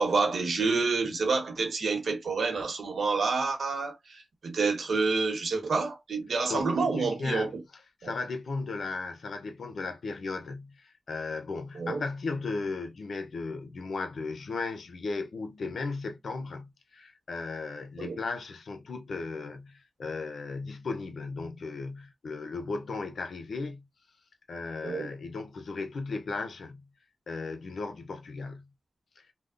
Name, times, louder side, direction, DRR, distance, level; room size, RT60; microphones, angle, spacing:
voice 1, 0.0-7.5 8.0-8.1 11.7-12.0 18.0-18.2 24.8-25.1, right 4 dB, 85° right, 1.1 m, -28 dB
voice 2, 6.5-7.5 8.0-23.9 24.5-26.9 27.3-28.7 29.2-29.3, left 3 dB, 80° left, 0.6 m, -36 dB
3.4 x 2.2 x 2.4 m
wide cardioid pair, 80°, 0 cm